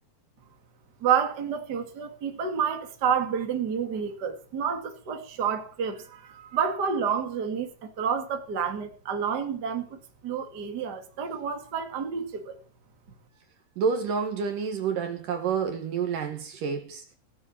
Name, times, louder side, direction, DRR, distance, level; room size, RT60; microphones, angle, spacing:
voice 1, 1.0-10.0 10.2-12.6, right 7 dB, 30° right, 2.3 m, -29 dB
voice 2, 13.8-17.0, right 6 dB, 65° right, 2.9 m, -29 dB
17.5 x 7.6 x 8.7 m
omnidirectional pair, 4.5 m